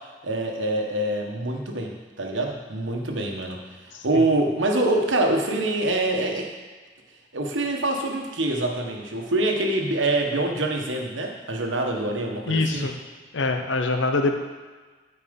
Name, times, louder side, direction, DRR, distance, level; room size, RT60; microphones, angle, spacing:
voice 1, 0.2-3.6 4.0-6.5 7.3-12.9, right 2 dB, 90° right, 2 dB, 1.3 m, -25 dB
voice 2, 3.9-4.4 12.5-13.0 13.3-14.3, left 3 dB, 80° left, 5 dB, 0.8 m, -24 dB
12.5 x 4.6 x 5.2 m, 1.4 s
head